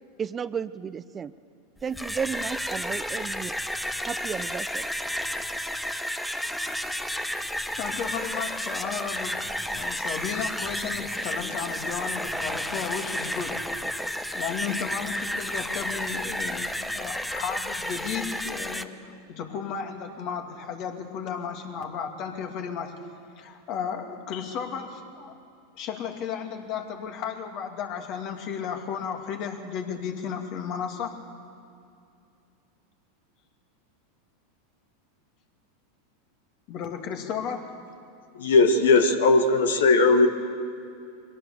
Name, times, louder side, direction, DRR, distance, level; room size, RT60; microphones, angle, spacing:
voice 1, 0.2-1.3 1.8-3.5 4.0-4.9, right 7 dB, 25° right, 15 dB, 0.6 m, -33 dB
sound 1, 1.8-18.8, equal, 5° left, 0.9 m, -32 dB
voice 2, 7.8-13.6 13.8-22.9 23.4-25.3 25.8-31.2 36.7-37.7, left 7 dB, 50° left, 4 dB, 2.6 m, -34 dB
voice 3, 38.4-40.3, left 3 dB, 80° left, 7 dB, 1.5 m, -18 dB
22.5 x 17.5 x 6.9 m, 2.5 s
hypercardioid pair, 95°, 0 cm